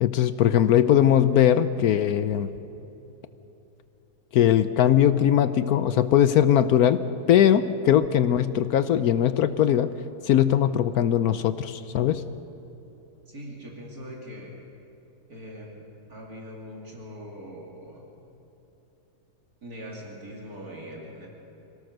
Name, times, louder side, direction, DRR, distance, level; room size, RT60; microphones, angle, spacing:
voice 1, 0.0-2.5 4.3-9.9 10.2-12.2, left 10 dB, 75° left, 12 dB, 1.1 m, -20 dB
voice 2, 13.3-14.5 15.3-18.0 19.6-21.3, equal, 65° right, -2 dB, 3.1 m, -41 dB
25.0 x 17.0 x 6.5 m, 3.0 s
omnidirectional pair, 1.7 m